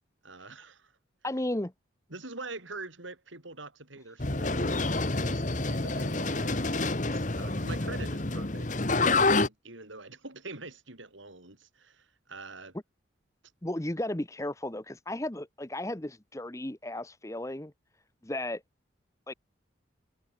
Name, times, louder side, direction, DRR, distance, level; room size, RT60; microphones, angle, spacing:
voice 1, 0.2-0.9 2.1-8.7 9.1-12.7, right 3 dB, 80° right, 6.2 m, -45 dB
voice 2, 1.2-1.7 13.6-17.7 18.2-18.6 19.3-19.4, left 1 dB, 15° left, 0.9 m, -34 dB
sound 1, 4.2-9.5, left 3 dB, 40° left, 1.6 m, -28 dB
head